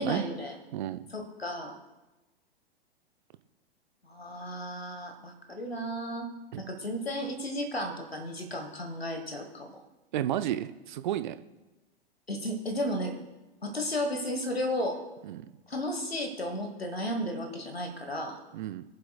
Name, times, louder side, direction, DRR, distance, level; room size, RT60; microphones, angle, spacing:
voice 1, 0.0-0.6 1.1-1.8 4.0-6.3 6.6-9.8 12.3-13.1 13.6-15.0 15.7-18.4, equal, 85° left, 6 dB, 1.3 m, -33 dB
voice 2, 10.1-11.4 15.2-15.5 18.5-18.8, right 12 dB, 50° right, 11 dB, 0.6 m, -32 dB
22.5 x 7.6 x 2.3 m, 1.1 s
figure-of-eight pair, 105°, 30 cm